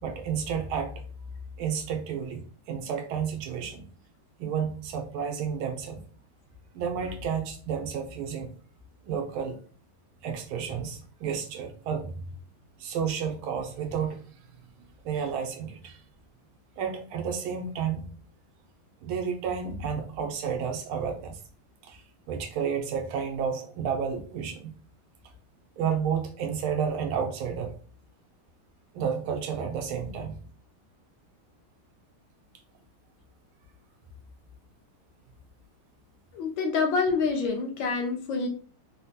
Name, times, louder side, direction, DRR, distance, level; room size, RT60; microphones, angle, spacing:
voice 1, 0.0-1.0 1.6-3.9 4.4-6.0 6.7-8.5 9.0-9.6 10.2-12.3 12.8-16.0 16.8-18.1 19.0-21.4 21.8-24.7 25.8-27.7 28.9-30.4, right 7 dB, 90° right, 5 dB, 1.5 m, -31 dB
voice 2, 36.3-38.5, left 4 dB, 70° left, 3 dB, 1.2 m, -27 dB
3.9 x 2.1 x 2.7 m, 0.41 s
omnidirectional pair, 2.3 m